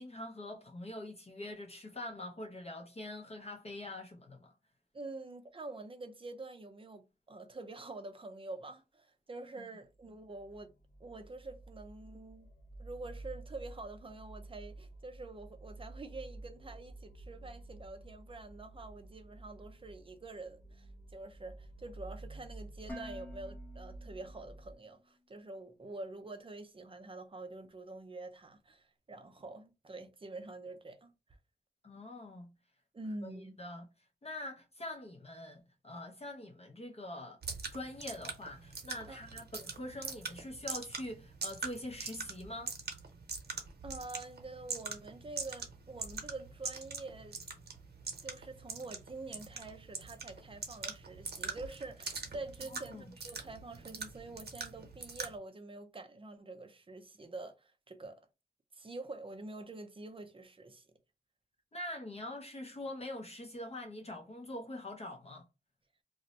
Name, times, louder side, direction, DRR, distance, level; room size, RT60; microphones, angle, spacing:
voice 1, 0.0-4.5 9.6-9.7 31.8-32.5 33.2-33.8 34.2-37.4 37.7-42.7 52.7-53.1 61.7-65.4, left 1 dB, 40° left, 0.6 m, -44 dB
voice 2, 4.9-10.7 11.0-12.5 12.8-31.1 32.9-33.6 39.1-39.2 43.8-47.4 48.2-58.2 58.7-60.9, right 2 dB, 30° right, 0.5 m, -46 dB
sound 1, 9.9-24.8, right 2 dB, 55° left, 0.9 m, -51 dB
Dishes pots and pans, 22.9-25.0, left 1 dB, 10° left, 0.8 m, -49 dB
sound 2, 37.4-55.4, right 4 dB, 80° right, 0.7 m, -43 dB
2.5 x 2.1 x 3.9 m
wide cardioid pair, 125°, 17 cm